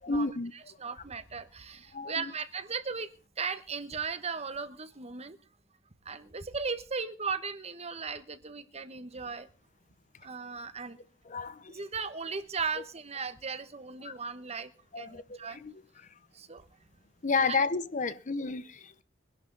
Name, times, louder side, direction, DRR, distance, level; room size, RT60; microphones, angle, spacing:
voice 1, 0.0-0.5 1.9-2.3 11.2-11.8 14.0-14.1 14.9-15.7 16.0-16.2 17.2-19.0, left 4 dB, 40° left, 0.7 m, -32 dB
voice 2, 0.8-3.1 3.4-5.4 6.0-9.5 10.2-11.0 11.7-14.7 15.0-15.6 16.3-16.7 17.5-17.6, right 5 dB, 35° right, 1.1 m, -37 dB
22.0 x 11.5 x 4.0 m
head